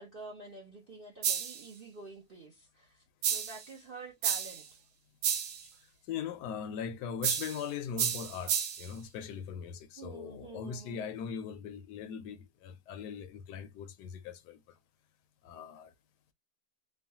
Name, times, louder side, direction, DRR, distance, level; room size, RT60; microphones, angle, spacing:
voice 1, 0.0-3.0 3.3-4.7 10.0-11.1, right 3 dB, 50° right, 0.6 m, -48 dB
sound 1, 1.2-1.7 3.2-3.7 4.2-4.7 5.2-5.6 7.2-7.6 8.0-8.9, right 9 dB, 85° right, 1.3 m, -31 dB
voice 2, 6.1-14.6 15.4-15.9, left 7 dB, 75° left, 1.1 m, -40 dB
3.1 x 2.2 x 2.7 m
omnidirectional pair, 1.9 m